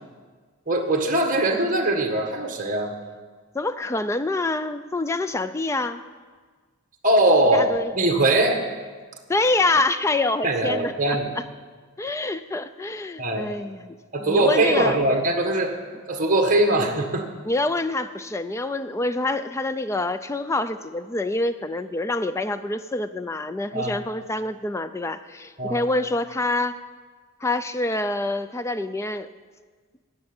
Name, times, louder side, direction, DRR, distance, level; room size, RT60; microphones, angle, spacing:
voice 1, 0.7-2.9 7.0-7.7 7.9-8.6 10.4-11.3 13.2-13.5 14.1-15.7 16.1-17.3 23.7-24.0 25.6-25.9, right 1 dB, 35° right, 3 dB, 1.5 m, -21 dB
voice 2, 3.5-6.0 7.5-7.9 9.3-10.9 11.4-11.5 12.0-15.0 16.7-16.9 17.5-26.8 27.4-29.3, left 2 dB, 15° left, 12 dB, 0.3 m, -26 dB
12.5 x 8.9 x 7.2 m, 1.5 s
head